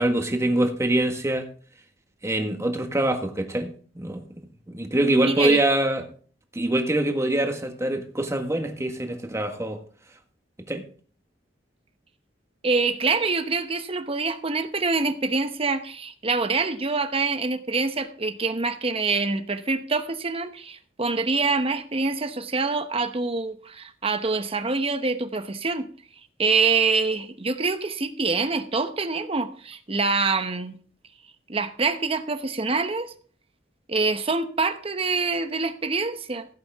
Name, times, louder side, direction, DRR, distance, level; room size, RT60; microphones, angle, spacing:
voice 1, 0.0-1.5 2.2-4.2 4.7-6.1 6.5-9.8 10.7-10.8, right 1 dB, 15° right, 1.6 m, -24 dB
voice 2, 5.2-5.6 12.6-25.9 26.4-30.8 31.5-33.1 33.9-36.5, right 4 dB, 35° right, 1.0 m, -25 dB
16.0 x 8.6 x 3.6 m
head